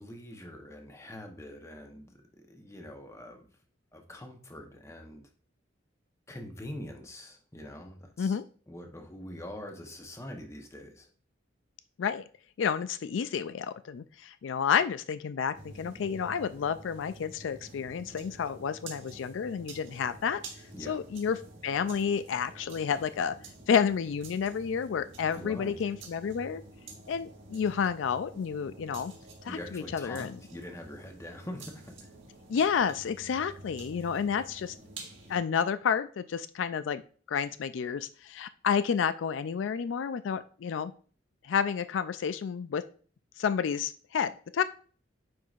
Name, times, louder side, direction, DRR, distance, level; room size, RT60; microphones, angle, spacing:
voice 1, 0.0-3.5 3.9-5.2 6.3-8.4 8.7-11.1 20.7-21.0 25.2-25.8 29.5-32.1, left 1 dB, 15° left, 3 dB, 0.9 m, -44 dB
voice 2, 12.6-20.4 20.9-21.4 21.6-23.4 23.7-26.6 27.1-29.1 29.4-30.4 32.5-34.7 35.3-37.0 37.3-40.9 41.4-42.8 43.4-44.6, left 7 dB, 90° left, 13 dB, 0.4 m, -30 dB
sound 1, 15.5-35.4, right 2 dB, 85° right, 1.8 m, -49 dB
9.3 x 4.6 x 2.5 m, 0.42 s
head